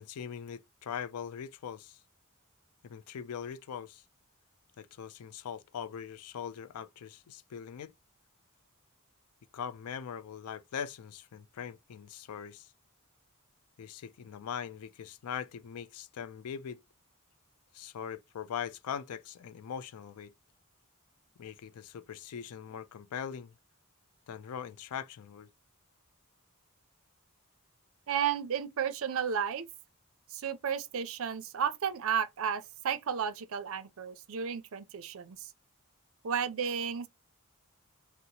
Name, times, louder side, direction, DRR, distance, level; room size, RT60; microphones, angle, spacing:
voice 1, 0.0-2.0 2.8-4.0 4.8-7.9 9.5-12.7 13.8-16.8 17.7-20.3 21.4-23.6 24.3-25.5, left 8 dB, 85° left, 0.4 m, -41 dB
voice 2, 28.1-29.7 30.3-35.5 36.2-37.1, right 7 dB, 65° right, 0.5 m, -33 dB
2.8 x 2.0 x 3.9 m
head